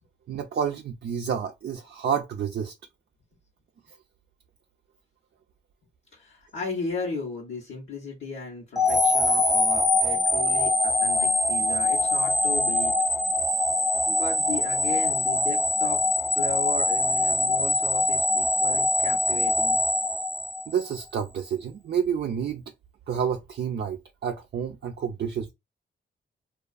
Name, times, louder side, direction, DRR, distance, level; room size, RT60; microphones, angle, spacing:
voice 1, 0.3-2.7 13.5-13.6 20.7-22.6 23.1-25.5, right 7 dB, 55° right, 0.4 m, -29 dB
voice 2, 6.1-12.9 14.1-16.0 16.4-19.8, left 3 dB, 70° left, 0.9 m, -35 dB
sound 1, 8.8-20.9, left 2 dB, ahead, 0.5 m, -23 dB
2.4 x 2.3 x 2.3 m
cardioid pair, 55°, 21 cm